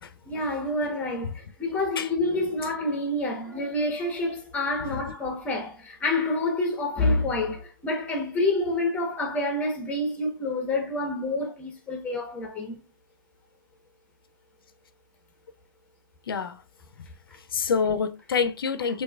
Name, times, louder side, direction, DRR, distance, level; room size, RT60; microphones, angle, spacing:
voice 1, 0.2-12.8, left 2 dB, 10° left, 1.1 m, -28 dB
voice 2, 16.3-16.6 17.5-19.0, left 5 dB, 85° left, 0.6 m, -26 dB
6.3 x 2.7 x 2.4 m
hypercardioid pair, 145°, 12 cm